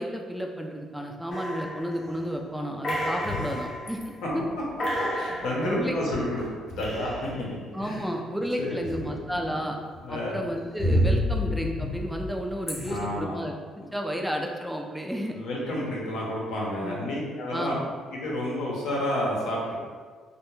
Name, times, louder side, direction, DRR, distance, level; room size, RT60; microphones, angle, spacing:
voice 1, 0.0-4.0 4.3-4.4 5.7-6.0 7.7-9.8 10.1-15.4 16.8-17.0 17.5-17.8, equal, 5° right, 1 dB, 0.4 m, -32 dB
sound 1, 1.3-2.3 2.8-4.1 4.4-4.5 4.8-7.5 8.8-9.5 9.9-13.0, equal, 45° left, 0.7 m, -30 dB
voice 2, 5.1-8.1 8.6-9.6 10.0-10.4 12.9-13.3 13.8-13.9 15.3-17.8 18.1-19.8, left 1 dB, 80° left, -4 dB, 0.7 m, -31 dB
2.3 x 2.2 x 3.0 m, 1.6 s
cardioid pair, 85°, 0 cm